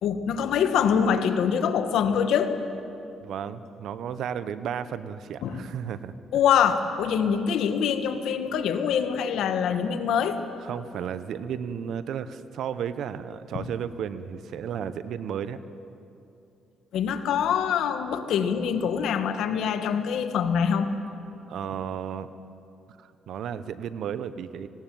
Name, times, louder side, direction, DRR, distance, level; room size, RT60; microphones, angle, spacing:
voice 1, 0.0-2.6 5.4-5.6 6.3-10.4 16.9-20.9, left 7 dB, 80° left, 8 dB, 1.5 m, -24 dB
voice 2, 3.2-6.1 10.6-15.6 21.5-22.3 22.9-24.7, right 8 dB, 75° right, 13 dB, 0.9 m, -33 dB
19.0 x 17.5 x 9.2 m, 2.8 s
cardioid pair, 90°, 0 cm